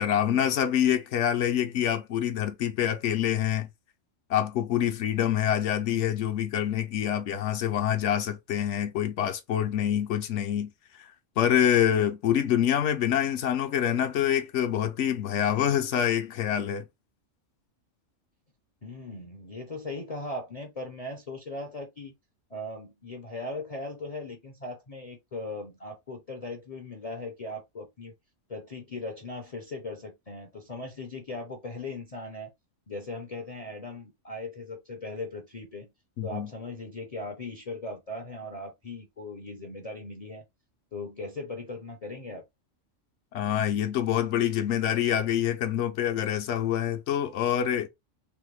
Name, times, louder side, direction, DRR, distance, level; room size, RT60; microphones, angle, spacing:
voice 1, 0.0-3.7 4.3-11.1 11.4-16.9 36.2-36.5 43.3-47.9, left 10 dB, 70° left, 0.9 m, -26 dB
voice 2, 18.8-22.1 22.5-28.1 28.5-32.5 32.9-35.9 36.2-40.4 40.9-42.4, left 2 dB, 40° left, 0.5 m, -38 dB
3.4 x 2.1 x 3.1 m
omnidirectional pair, 1.3 m